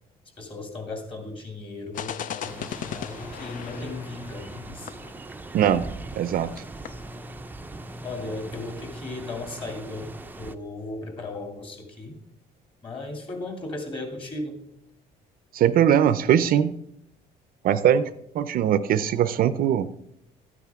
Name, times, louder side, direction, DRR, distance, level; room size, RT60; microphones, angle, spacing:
voice 1, 0.4-5.0 8.0-10.1 10.4-12.1 12.8-14.6, left 2 dB, 30° left, 4 dB, 2.6 m, -36 dB
sound 1, 1.9-6.3 6.6-6.7 6.9-7.1, left 10 dB, 50° left, 0.5 m, -38 dB
sound 2, 2.4-10.6, right 2 dB, 10° right, 0.5 m, -40 dB
voice 2, 6.1-6.5 15.5-16.7 17.6-18.1 18.3-19.9, right 9 dB, 60° right, 14 dB, 0.5 m, -21 dB
12.5 x 9.5 x 3.5 m, 0.78 s
cardioid pair, 110°, 17 cm